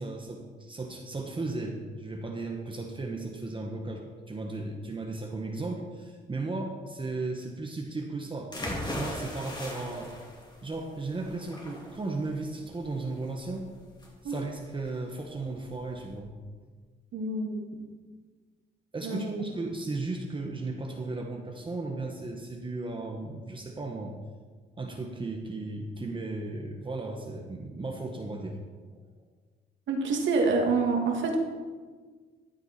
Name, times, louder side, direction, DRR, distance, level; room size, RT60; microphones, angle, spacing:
voice 1, 0.0-8.5 8.9-10.1 10.6-13.7 14.2-16.3 18.9-24.1 24.7-28.6 28.9-29.0, right 3 dB, 25° right, 1 dB, 1.3 m, -35 dB
sound 1, 8.5-16.2, left 1 dB, 20° left, 2.6 m, -40 dB
voice 2, 17.1-17.7 19.0-19.4 29.9-31.4, right 3 dB, 70° right, 1 dB, 2.2 m, -27 dB
14.0 x 8.0 x 4.4 m, 1.5 s
cardioid pair, 90°, 20 cm